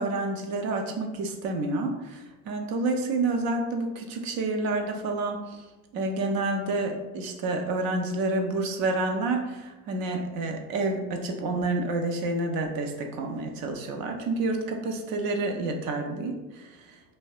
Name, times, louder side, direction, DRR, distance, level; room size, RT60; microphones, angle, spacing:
voice 1, 0.0-5.6 5.9-16.6, right 2 dB, 50° right, 3 dB, 0.5 m, -29 dB
2.6 x 2.2 x 2.3 m, 1.1 s
hypercardioid pair, 75°, 45 cm